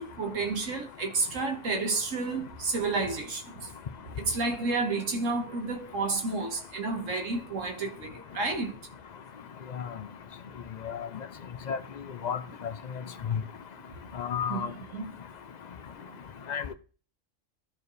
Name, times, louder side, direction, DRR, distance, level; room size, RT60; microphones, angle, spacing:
voice 1, 0.0-3.7 4.2-8.8 14.5-15.1, right 3 dB, 80° right, 1.8 m, -31 dB
voice 2, 14.2-14.7 16.5-16.7, left 7 dB, 50° left, 0.5 m, -30 dB
13.0 x 4.6 x 3.3 m
omnidirectional pair, 1.3 m